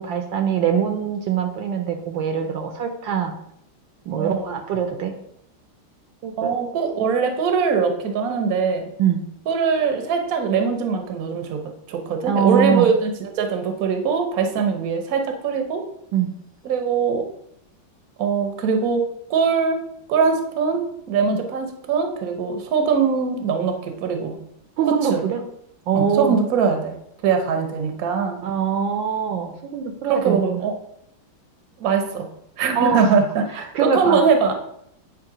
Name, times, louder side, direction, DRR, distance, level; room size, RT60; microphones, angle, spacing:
voice 1, 0.0-3.3 4.1-5.1 6.2-6.6 9.0-9.2 12.2-12.9 14.6-14.7 16.1-16.3 24.8-25.4 25.9-26.4 28.4-30.6 32.7-33.1 33.6-34.2, right 7 dB, 70° right, 5 dB, 1.4 m, -23 dB
voice 2, 4.2-4.6 6.4-8.8 9.5-11.6 11.9-15.8 16.6-17.3 18.2-19.0 19.3-19.8 20.1-24.4 25.1-25.2 25.9-27.0 27.2-28.4 30.1-30.7 31.8-32.3 32.6-34.5, right 5 dB, 55° right, 5 dB, 1.2 m, -22 dB
9.0 x 3.3 x 4.9 m, 0.74 s
omnidirectional pair, 2.2 m